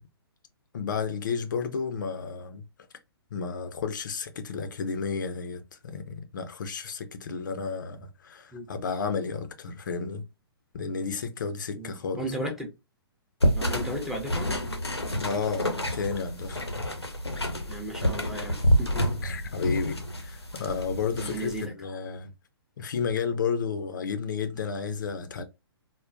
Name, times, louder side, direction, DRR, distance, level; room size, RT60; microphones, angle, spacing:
voice 1, 0.7-2.6 3.3-10.2 10.7-12.3 15.2-16.6 19.2-22.3 22.8-25.4, left 5 dB, 50° left, 0.5 m, -32 dB
voice 2, 11.7-12.7 13.5-14.5 17.7-19.0 21.2-21.7, right 1 dB, 5° right, 0.6 m, -35 dB
sound 1, 13.4-21.6, equal, 90° left, 0.7 m, -28 dB
3.7 x 2.1 x 2.4 m
figure-of-eight pair, 125°, 13 cm